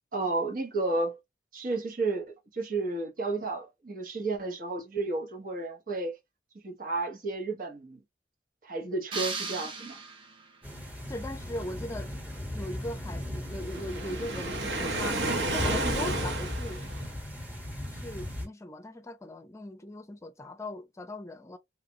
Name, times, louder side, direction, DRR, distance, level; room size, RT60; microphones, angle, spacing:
voice 1, 0.1-1.2 1.5-6.1 6.6-8.0 8.6-10.0, right 3 dB, 50° right, 1.2 m, -32 dB
sound 1, 9.1-10.7, right 4 dB, 30° right, 0.7 m, -36 dB
sound 2, 10.6-18.5, left 1 dB, 10° right, 1.3 m, -37 dB
voice 2, 11.1-12.1 12.5-15.2 15.5-16.8 17.9-21.6, left 1 dB, 15° left, 0.6 m, -39 dB
Waves surf, 13.7-17.2, right 2 dB, 85° right, 0.9 m, -31 dB
3.2 x 2.5 x 2.9 m
head